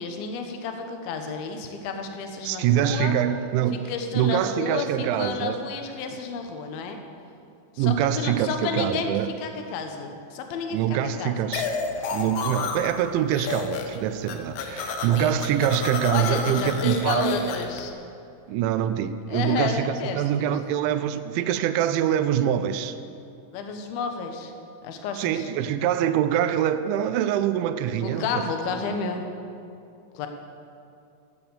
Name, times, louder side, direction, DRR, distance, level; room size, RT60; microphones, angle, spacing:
voice 1, 0.0-3.2 3.7-7.0 7.7-11.4 11.9-12.1 16.1-17.9 19.3-20.6 23.5-24.5 24.8-25.5 28.0-29.3 30.1-30.3, left 5 dB, 70° left, 5 dB, 2.4 m, -31 dB
voice 2, 2.4-5.6 7.8-9.3 10.7-11.7 12.1-17.4 18.5-23.0 25.2-28.5 28.9-29.1, right 10 dB, 80° right, 10 dB, 2.8 m, -24 dB
sound 1, 11.5-13.0 13.3-14.0 14.2-17.8, left 5 dB, 85° left, 3.6 m, -30 dB
15.0 x 8.3 x 7.0 m, 2.6 s
omnidirectional pair, 5.6 m